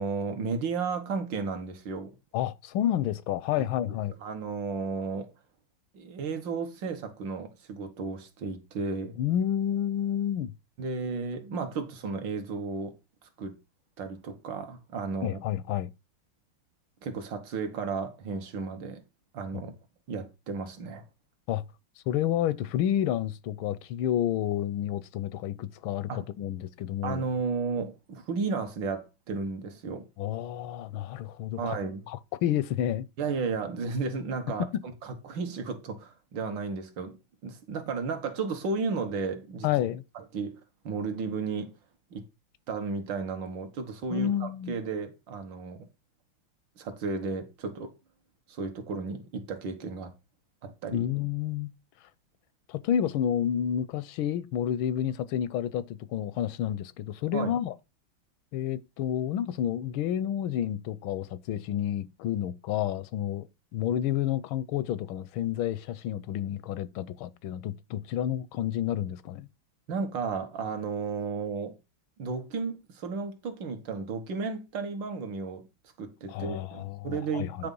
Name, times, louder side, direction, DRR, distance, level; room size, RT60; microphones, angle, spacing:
voice 1, 0.0-2.1 3.6-4.0 4.2-5.3 5.9-9.1 10.8-12.9 13.4-13.5 14.0-15.4 17.0-19.0 19.3-19.7 20.1-21.0 26.1-26.2 27.0-30.1 31.6-32.1 33.2-34.6 35.0-37.2 37.4-39.7 40.2-40.6 40.9-41.7 42.1-42.2 42.7-45.9 46.8-47.9 48.5-50.1 50.6-51.1 57.3-57.5 69.9-71.7 72.2-75.6 76.0-77.7, right 4 dB, 70° right, 1.8 m, -33 dB
voice 2, 2.3-4.1 9.2-10.5 15.2-15.9 19.5-19.6 21.5-21.6 22.1-27.2 30.2-31.8 32.1-33.0 34.7-34.8 39.6-40.0 44.1-44.7 50.9-51.7 52.7-57.7 58.5-63.5 63.7-69.5 76.3-77.7, left 10 dB, 85° left, 1.4 m, -30 dB
9.7 x 3.6 x 5.3 m
omnidirectional pair, 2.2 m